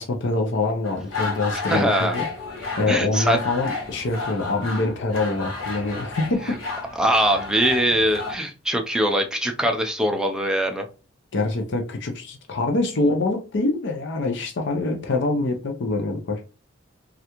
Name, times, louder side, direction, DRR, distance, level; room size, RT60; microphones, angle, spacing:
voice 1, 0.0-2.3 2.8-6.6 11.3-16.4, left 2 dB, 60° left, 0.6 m, -25 dB
sound 1, 0.8-8.3, left 4 dB, 85° left, 1.1 m, -32 dB
voice 2, 1.7-2.2 2.9-3.4 7.0-10.9, right 1 dB, 5° right, 0.4 m, -22 dB
3.3 x 2.4 x 2.9 m
head